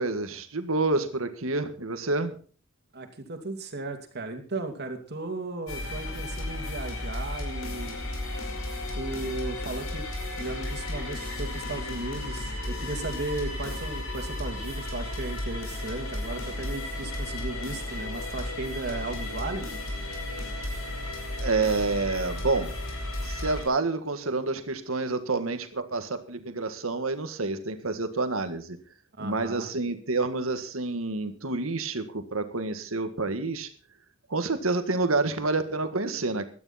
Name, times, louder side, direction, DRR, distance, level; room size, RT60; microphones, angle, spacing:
voice 1, 0.0-2.3 21.4-22.7 23.2-28.8 29.2-33.7 34.3-36.5, right 3 dB, 80° right, 9 dB, 1.8 m, -28 dB
voice 2, 2.9-8.0 8.9-10.1 10.4-19.8 29.2-29.7, right 2 dB, 55° right, 5 dB, 2.5 m, -36 dB
sound 1, 5.7-23.6, left 1 dB, 85° left, 5.3 m, -34 dB
17.0 x 12.0 x 4.2 m, 0.40 s
head